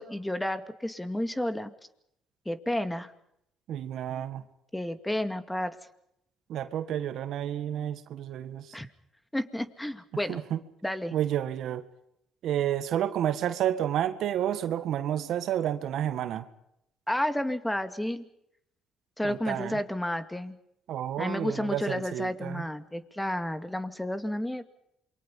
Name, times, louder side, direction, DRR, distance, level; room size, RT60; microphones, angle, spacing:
voice 1, 0.0-1.7 2.5-3.1 4.7-5.8 8.7-8.9 9.3-10.4 10.8-11.1 17.1-18.2 19.2-20.6 21.2-24.6, left 1 dB, 10° left, 10 dB, 2.3 m, -31 dB
voice 2, 3.7-4.4 6.5-8.8 10.3-10.6 11.1-11.8 12.4-16.5 19.2-19.8 20.9-22.6, right 11 dB, 70° right, 10 dB, 1.8 m, -30 dB
28.0 x 23.5 x 5.6 m, 0.78 s
supercardioid pair, 60°, 0 cm